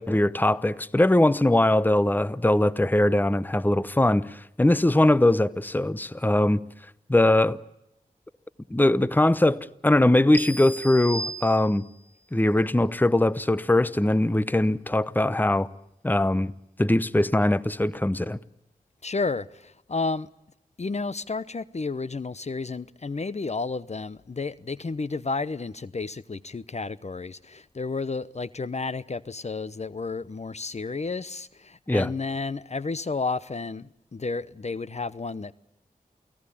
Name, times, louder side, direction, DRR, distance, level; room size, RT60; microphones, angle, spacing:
voice 1, 0.0-6.6 7.1-7.6 8.7-11.8 12.3-15.7 16.0-16.5 16.8-18.4 31.9-32.1, left 1 dB, 10° left, 0.9 m, -21 dB
sound 1, 10.3-12.1, right 1 dB, 15° right, 3.5 m, -35 dB
voice 2, 19.0-20.3 20.8-35.5, left 4 dB, 45° left, 0.9 m, -31 dB
29.0 x 18.5 x 8.6 m
wide cardioid pair, 55°, 15 cm